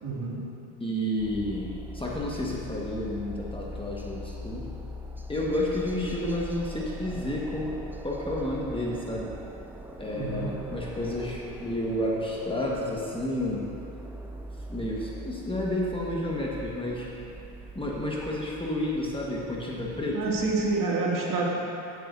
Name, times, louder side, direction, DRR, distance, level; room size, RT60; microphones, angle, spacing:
voice 1, 0.0-0.4 10.1-10.5 20.1-21.5, right 3 dB, 45° right, -3 dB, 2.4 m, -28 dB
voice 2, 0.8-4.7 5.3-9.3 10.0-13.7 14.7-17.1 17.7-20.2, left 1 dB, 10° left, -4 dB, 1.4 m, -31 dB
sound 1, 1.2-20.8, equal, 5° right, 0.5 m, -42 dB
15.0 x 9.4 x 2.7 m, 2.7 s
hypercardioid pair, 80°, 46 cm